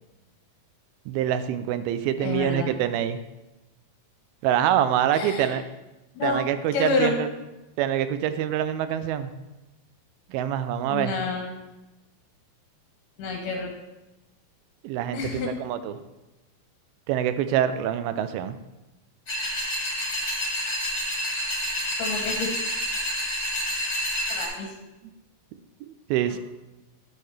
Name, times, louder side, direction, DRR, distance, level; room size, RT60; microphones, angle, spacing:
voice 1, 1.1-3.2 4.4-5.6 6.2-7.3 7.8-9.3 10.3-11.1 14.8-16.0 17.1-18.6 25.9-26.4, right 10 dB, 85° right, 11 dB, 2.4 m, -25 dB
voice 2, 2.2-2.7 5.1-5.6 6.2-6.4 6.7-7.2 10.9-11.5 13.2-13.7 15.1-15.5 22.0-22.5 24.3-24.8 26.3-26.4, left 4 dB, 70° left, 2 dB, 2.2 m, -28 dB
sound 1, 19.3-24.5, equal, 40° left, 2.1 m, -28 dB
10.0 x 6.5 x 3.2 m, 1.0 s
omnidirectional pair, 4.3 m